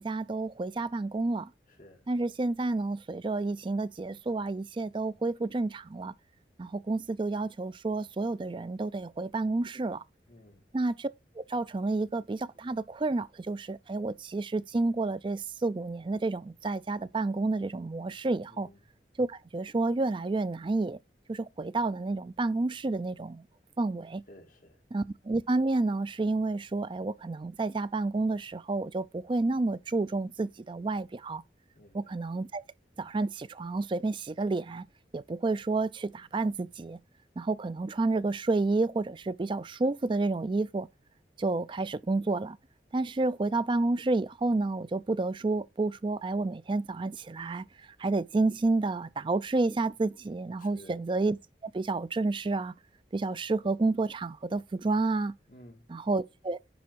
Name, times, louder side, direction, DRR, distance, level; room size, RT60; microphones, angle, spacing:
voice 1, 0.0-1.5 2.1-6.1 6.6-10.0 10.7-11.1 11.5-18.7 19.2-21.0 21.3-23.4 23.8-24.2 24.9-31.4 31.9-32.6 33.0-34.9 35.1-37.0 37.4-40.9 41.4-42.6 42.9-47.6 48.0-51.4 51.6-52.7 53.1-55.3 55.9-56.6, right 3 dB, 25° right, 0.4 m, -30 dB
voice 2, 1.7-2.1 10.3-10.7 18.5-18.8 24.3-24.8 31.7-32.2 50.6-50.9 55.5-55.9, left 1 dB, 50° left, 2.0 m, -54 dB
10.5 x 3.5 x 4.5 m
head